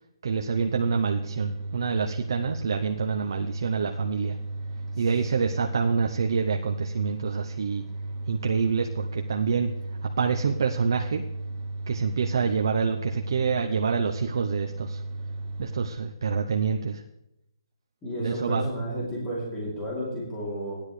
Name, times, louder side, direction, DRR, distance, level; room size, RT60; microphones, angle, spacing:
voice 1, 0.2-4.4 5.0-7.8 8.3-9.7 10.0-11.2 11.9-15.0 15.6-17.0 18.2-18.6, right 5 dB, 55° right, 4 dB, 0.7 m, -27 dB
sound 1, 0.5-15.9, right 2 dB, 25° right, 0.9 m, -35 dB
voice 2, 18.0-20.8, right 1 dB, 10° left, -6 dB, 3.1 m, -32 dB
16.0 x 10.5 x 3.3 m, 0.85 s
hypercardioid pair, 170°, 3 cm